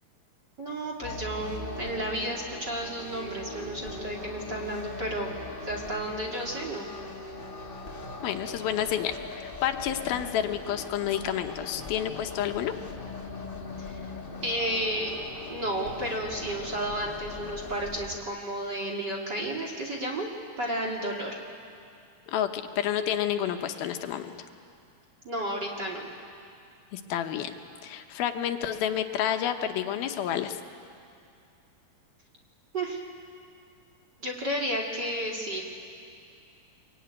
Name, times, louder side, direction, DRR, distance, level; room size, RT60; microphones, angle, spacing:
voice 1, 0.6-5.3 5.6-6.9 13.8-13.9 14.4-15.1 15.5-20.3 20.6-21.4 25.2-26.1 32.7-33.0 34.2-35.6, right 1 dB, 30° right, 0 dB, 2.5 m, -32 dB
sound 1, 1.0-18.2, left 2 dB, 25° left, 1.1 m, -40 dB
voice 2, 8.2-12.7 22.3-24.3 26.9-27.6 27.8-30.6, left 10 dB, 80° left, 6 dB, 2.8 m, -29 dB
24.5 x 23.5 x 9.7 m, 2.5 s
omnidirectional pair, 4.4 m